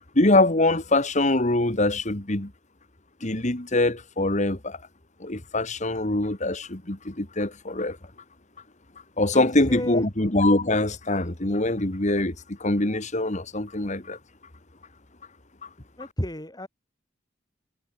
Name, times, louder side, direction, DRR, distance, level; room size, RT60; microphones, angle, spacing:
voice 1, 0.2-2.5 3.2-4.8 5.2-8.0 9.2-12.4 12.6-14.2, left 2 dB, 35° left, 2.1 m, -23 dB
voice 2, 9.3-10.0 16.0-16.7, equal, 20° left, 7.8 m, -32 dB
head